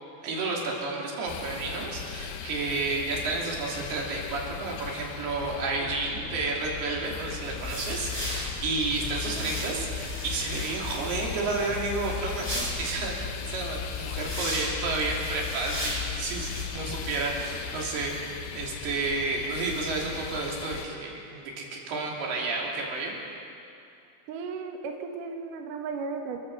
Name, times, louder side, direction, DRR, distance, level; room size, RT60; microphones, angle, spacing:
voice 1, 0.2-23.1, right 3 dB, 90° right, -2 dB, 5.0 m, -31 dB
sound 1, 1.3-20.9, left 8 dB, 75° left, 2.6 m, -39 dB
sound 2, 7.1-17.3, left 3 dB, 5° left, 5.1 m, -35 dB
voice 2, 9.6-9.9 24.3-26.4, right 4 dB, 65° right, 3 dB, 2.7 m, -35 dB
29.5 x 15.5 x 6.1 m, 2.5 s
omnidirectional pair, 4.5 m